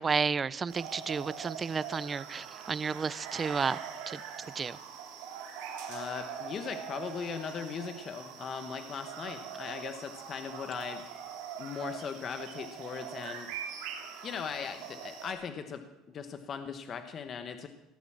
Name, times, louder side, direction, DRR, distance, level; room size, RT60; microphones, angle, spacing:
voice 1, 0.0-3.8 4.1-4.8, right 5 dB, 20° right, 19 dB, 0.4 m, -32 dB
sound 1, 0.7-15.3, right 7 dB, 85° right, 3.2 m, -43 dB
voice 2, 5.9-11.0 11.6-13.5 14.2-17.7, left 6 dB, 35° left, 8 dB, 1.1 m, -39 dB
17.5 x 9.2 x 7.3 m, 1.0 s
cardioid pair, 150°, 0 cm